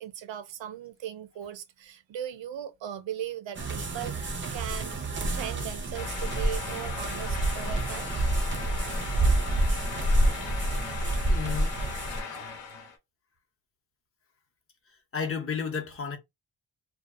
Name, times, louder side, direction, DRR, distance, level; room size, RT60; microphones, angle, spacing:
voice 1, 0.0-4.9 5.3-8.1, right 10 dB, 85° right, 0.6 m, -38 dB
sound 1, 3.5-12.2, right 1 dB, 30° right, 0.3 m, -28 dB
sound 2, 5.9-13.0, left 5 dB, 85° left, 0.9 m, -38 dB
voice 2, 11.3-11.8 15.1-16.2, left 6 dB, 30° left, 0.6 m, -32 dB
2.7 x 2.1 x 2.4 m
wide cardioid pair, 165°, 44 cm